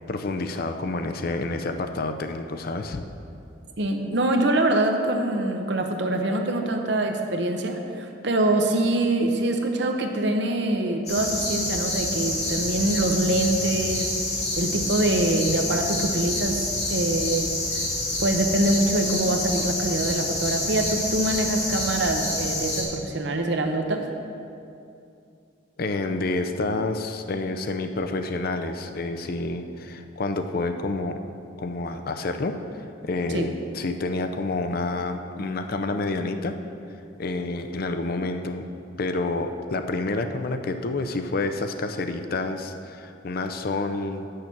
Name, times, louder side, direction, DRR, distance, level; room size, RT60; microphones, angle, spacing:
voice 1, 0.1-3.0 25.8-31.2 31.6-36.6 37.2-38.6 39.0-44.3, left 2 dB, 50° left, 7 dB, 0.5 m, -28 dB
voice 2, 3.8-14.1 14.6-16.6 16.9-17.5 18.2-24.0 33.3-33.5, right 1 dB, 60° right, 3 dB, 0.9 m, -24 dB
sound 1, 11.1-22.8, left 1 dB, 35° left, 2.2 m, -28 dB
8.4 x 6.6 x 5.9 m, 2.6 s
head